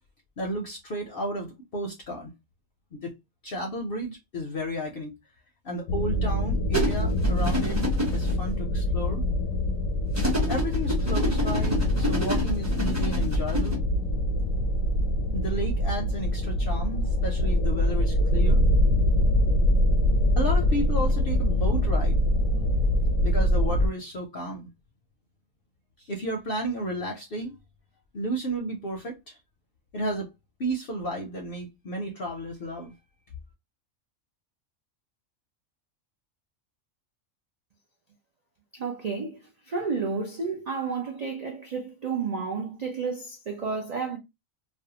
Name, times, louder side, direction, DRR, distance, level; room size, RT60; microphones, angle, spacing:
voice 1, 0.4-2.3 2.9-3.1 3.4-5.1 5.6-7.8 8.1-9.3 10.5-13.8 15.3-18.6 20.3-22.2 23.2-24.7 26.0-27.5 28.1-29.3 29.9-30.3 30.6-32.9, right 1 dB, 60° left, 0.6 m, -32 dB
sound 1, 5.9-23.9, left 1 dB, 85° left, 1.0 m, -24 dB
sound 2, 6.7-8.3 10.1-13.7, equal, 20° right, 0.5 m, -28 dB
voice 2, 38.7-44.2, right 5 dB, 70° right, 0.4 m, -31 dB
2.5 x 2.1 x 2.7 m
omnidirectional pair, 1.4 m